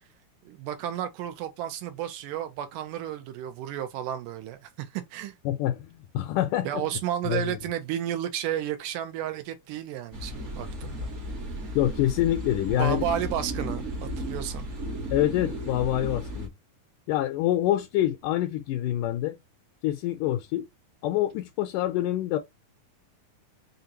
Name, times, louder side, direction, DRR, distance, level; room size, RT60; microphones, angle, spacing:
voice 1, 0.5-5.4 6.6-11.1 12.8-14.7, right 11 dB, 90° right, 2.3 m, -32 dB
voice 2, 5.5-6.8 7.2-7.6 11.8-13.0 15.1-16.5 17.1-19.4 19.8-20.7 21.0-22.4, left 13 dB, 80° left, 2.1 m, -26 dB
sound 1, 10.1-16.5, equal, 55° right, 0.7 m, -34 dB
5.6 x 2.5 x 2.8 m
omnidirectional pair, 3.7 m